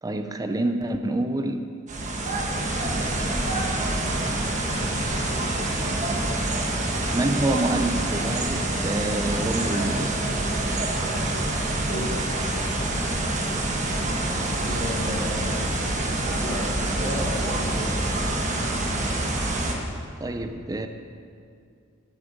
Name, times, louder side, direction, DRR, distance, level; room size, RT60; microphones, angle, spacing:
voice 1, 0.0-1.7 7.1-10.2 20.2-20.9, right 2 dB, 15° right, 8 dB, 0.4 m, -27 dB
sound 1, 1.9-19.7, right 1 dB, 35° right, 1.2 m, -26 dB
voice 2, 14.6-15.7 16.4-16.6 17.0-18.0, left 1 dB, 45° left, -10 dB, 2.9 m, -33 dB
12.0 x 8.7 x 5.4 m, 2.4 s
head